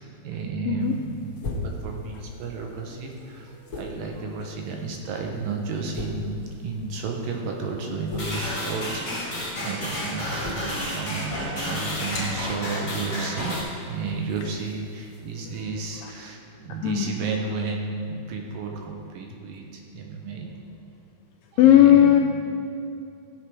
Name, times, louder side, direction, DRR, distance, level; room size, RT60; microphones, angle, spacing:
voice 1, 0.0-1.4 1.8-20.6 21.5-22.2, right 4 dB, 70° right, 1 dB, 2.5 m, -32 dB
voice 2, 0.6-1.0 16.8-17.1 21.6-22.2, left 11 dB, 85° left, 4 dB, 2.0 m, -16 dB
sound 1, 0.8-15.6, left 2 dB, 65° left, 1.1 m, -41 dB
sound 2, 8.2-13.6, left 1 dB, 25° left, 3.3 m, -31 dB
16.5 x 7.3 x 4.8 m, 2.7 s
omnidirectional pair, 4.5 m